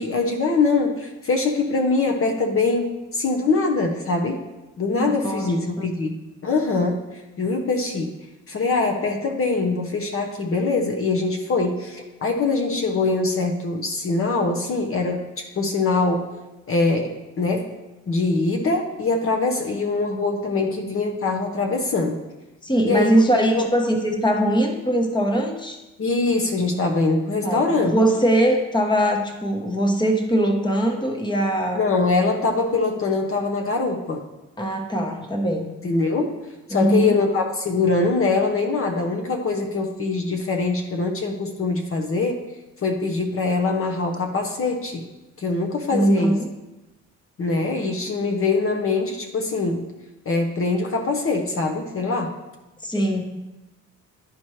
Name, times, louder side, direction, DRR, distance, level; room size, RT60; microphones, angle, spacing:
voice 1, 0.0-4.4 4.8-8.1 8.5-16.3 16.7-17.7 18.1-22.2 22.8-23.2 23.5-23.7 26.0-28.0 31.7-34.2 35.8-42.4 42.8-45.0 45.4-46.4 47.4-49.9 50.3-52.3, left 3 dB, 45° left, 3 dB, 0.9 m, -23 dB
voice 2, 5.0-5.8 22.6-25.8 27.4-31.8 34.6-35.7 36.7-37.2 45.9-46.5 52.8-53.2, right 1 dB, 15° left, 3 dB, 1.0 m, -21 dB
11.5 x 4.3 x 3.2 m, 1.0 s
cardioid pair, 90°, 30 cm